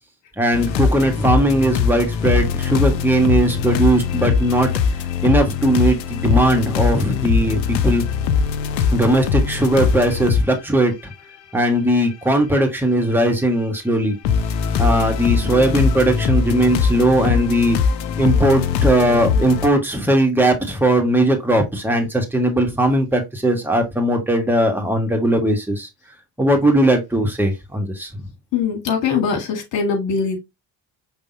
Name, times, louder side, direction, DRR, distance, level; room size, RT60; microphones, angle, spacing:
voice 1, 0.4-4.7 5.2-8.0 8.9-11.1 11.5-14.2 14.8-17.8 18.2-25.9 26.4-28.3, right 1 dB, 5° right, 1.7 m, -18 dB
sound 1, 0.5-10.4 11.1-11.2 12.1-12.2 14.2-19.7, left 6 dB, 90° left, 0.5 m, -21 dB
voice 2, 28.5-30.4, left 5 dB, 60° left, 2.0 m, -21 dB
5.4 x 3.4 x 2.8 m
hypercardioid pair, 50°, 48 cm